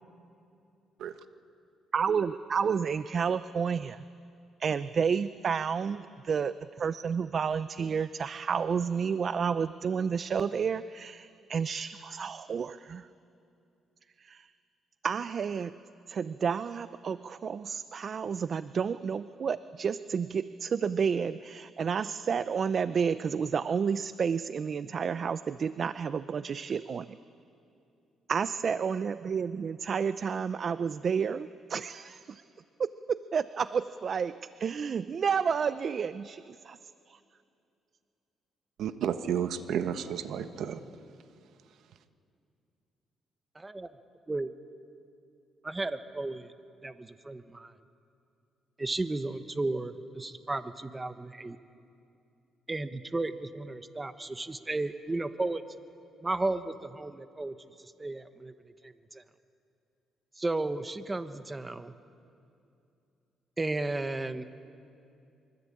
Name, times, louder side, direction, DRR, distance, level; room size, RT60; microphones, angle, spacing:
voice 1, 1.9-4.0 4.6-13.1 14.2-14.5 15.0-15.8 16.1-27.2 28.3-32.4 32.8-36.8 37.1-37.2, right 6 dB, 50° right, 14 dB, 0.6 m, -31 dB
voice 2, 38.8-40.8, right 8 dB, 75° right, 10 dB, 1.2 m, -31 dB
voice 3, 43.5-43.9 44.3-44.5 45.6-46.5 46.8-47.7 48.8-51.6 52.7-55.6 56.2-57.5 57.8-58.5 58.8-59.2 60.4-61.9 63.6-64.5, right 2 dB, 20° right, 10 dB, 1.2 m, -34 dB
24.0 x 24.0 x 8.7 m, 2.6 s
cardioid pair, 90°, 0 cm